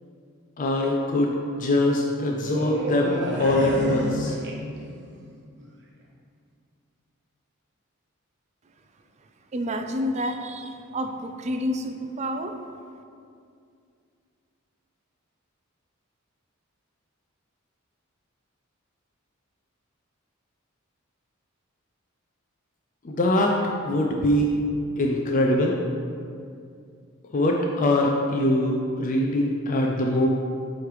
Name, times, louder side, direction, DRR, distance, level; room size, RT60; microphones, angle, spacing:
voice 1, 0.6-4.4 23.0-23.5 23.8-24.6 25.0-25.7 27.3-30.3, left 1 dB, 40° left, 0 dB, 0.5 m, -23 dB
sound 1, 2.4-5.1 5.4-5.6, equal, 55° right, 0.9 m, -30 dB
voice 2, 9.2-12.6, equal, 30° right, 6 dB, 0.4 m, -30 dB
8.2 x 3.2 x 4.8 m, 2.4 s
head